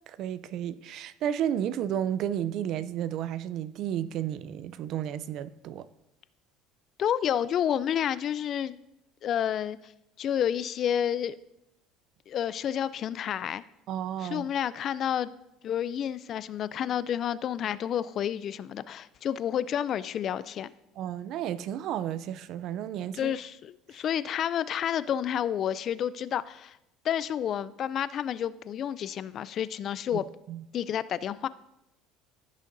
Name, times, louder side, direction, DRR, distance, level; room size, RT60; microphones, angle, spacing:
voice 1, 0.1-5.9 13.9-14.5 21.0-23.3 30.1-30.6, right 10 dB, 55° right, 0.4 m, -32 dB
voice 2, 7.0-8.8 9.2-9.9 10.2-11.3 12.3-13.6 14.2-15.3 15.6-20.7 23.1-26.8 27.0-30.2 30.7-31.5, left 9 dB, 45° left, 0.3 m, -30 dB
15.5 x 6.4 x 2.6 m
supercardioid pair, 120°, 0 cm